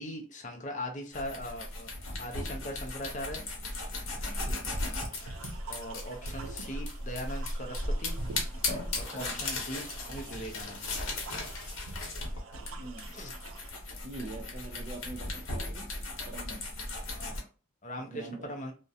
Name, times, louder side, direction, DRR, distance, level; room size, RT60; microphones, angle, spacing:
voice 1, 0.0-1.9 2.2-3.4 5.7-8.2 9.0-10.8 13.1-13.3 17.1-17.4 17.8-18.7, equal, 35° left, 2 dB, 0.5 m, -40 dB
sound 1, 1.1-17.4, left 2 dB, 80° left, 0.8 m, -36 dB
voice 2, 4.5-4.9 9.1-9.4 12.7-13.1 14.0-15.9 16.3-16.6 18.0-18.5, right 2 dB, 30° right, -1 dB, 0.5 m, -44 dB
sound 2, 4.9-13.7, right 3 dB, 85° right, 0.4 m, -47 dB
2.3 x 2.1 x 2.6 m, 0.36 s
head